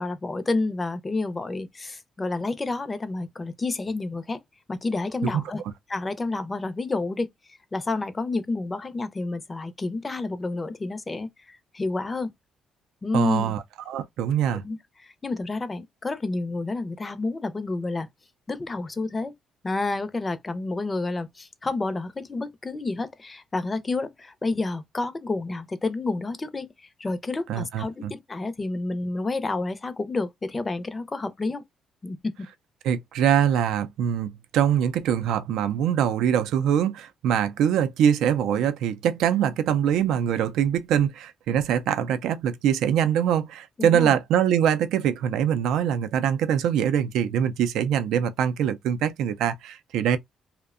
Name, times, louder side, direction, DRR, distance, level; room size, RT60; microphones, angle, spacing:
voice 1, 0.0-4.4 4.7-5.6 5.9-7.3 7.7-12.3 13.0-13.5 14.6-18.1 18.5-19.3 19.6-26.7 27.0-31.6 32.0-32.2 43.8-44.1, left 3 dB, 25° left, 0.5 m, -29 dB
voice 2, 13.1-14.6 27.5-28.1 32.8-50.2, right 9 dB, 85° right, 0.4 m, -23 dB
2.6 x 2.1 x 2.4 m
cardioid pair, 90°, 0 cm